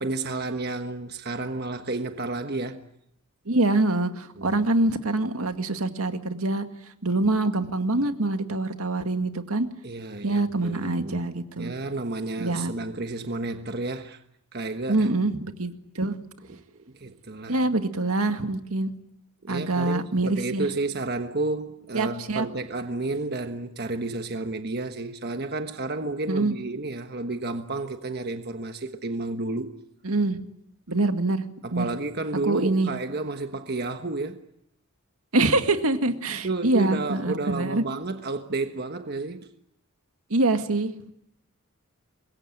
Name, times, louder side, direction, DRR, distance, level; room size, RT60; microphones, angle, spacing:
voice 1, 0.0-2.8 4.4-4.6 9.8-11.3 11.6-14.2 14.5-15.1 16.5-17.6 19.4-29.7 31.6-34.4 36.3-39.5, right 2 dB, 45° right, 1.3 m, -31 dB
voice 2, 3.5-6.7 7.0-9.7 10.2-11.7 12.4-12.7 14.9-16.2 17.5-18.9 19.5-20.7 21.9-22.5 26.3-26.6 30.0-30.4 30.9-31.4 31.7-31.9 32.4-32.9 35.3-37.9 40.3-41.1, right 2 dB, 80° right, 2.0 m, -25 dB
25.5 x 22.0 x 8.9 m
head